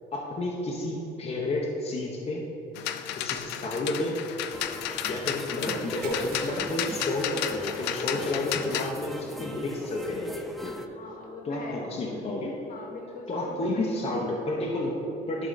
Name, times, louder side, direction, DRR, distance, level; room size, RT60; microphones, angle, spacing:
voice 1, 0.1-2.4 3.1-4.2 5.1-10.8 11.4-12.5 13.3-15.5, left 2 dB, 35° left, -3 dB, 0.9 m, -31 dB
sound 1, 2.8-8.9, left 11 dB, 85° left, 0.4 m, -33 dB
sound 2, 4.5-10.9, equal, ahead, 0.4 m, -41 dB
sound 3, 6.0-7.9 8.3-8.5 8.9-9.0 10.7-10.8, right 6 dB, 65° right, 0.8 m, -48 dB
voice 2, 11.0-11.9 12.7-14.2, left 2 dB, 55° left, 1 dB, 1.3 m, -42 dB
11.5 x 3.9 x 4.0 m, 3.0 s
cardioid pair, 110°, 17 cm